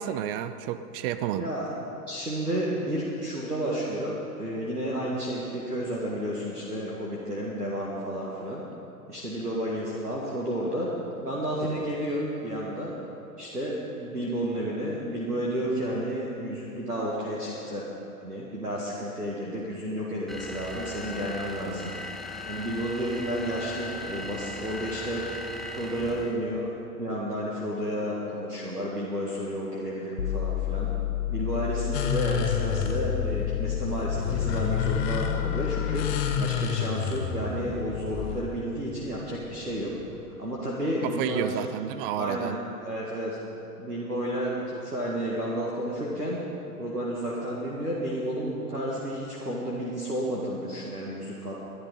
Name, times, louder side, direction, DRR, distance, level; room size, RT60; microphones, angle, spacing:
voice 1, 0.0-1.5 41.0-42.5, right 10 dB, 35° right, 13 dB, 0.7 m, -30 dB
voice 2, 1.3-1.7 2.1-8.6 9.1-10.9 11.2-12.9 13.4-17.9 18.2-21.9 22.4-25.5 25.7-30.9 31.3-40.0 40.4-41.6 42.1-43.4 43.8-46.4 46.8-51.5, equal, 90° right, -4 dB, 2.0 m, -31 dB
sound 1, 20.3-26.5, left 2 dB, ahead, 0.9 m, -38 dB
sound 2, 30.2-36.4, left 14 dB, 75° left, 0.8 m, -30 dB
sound 3, 31.9-40.3, left 7 dB, 40° left, 1.3 m, -31 dB
20.5 x 11.0 x 5.5 m, 2.8 s
figure-of-eight pair, 95°, 46 cm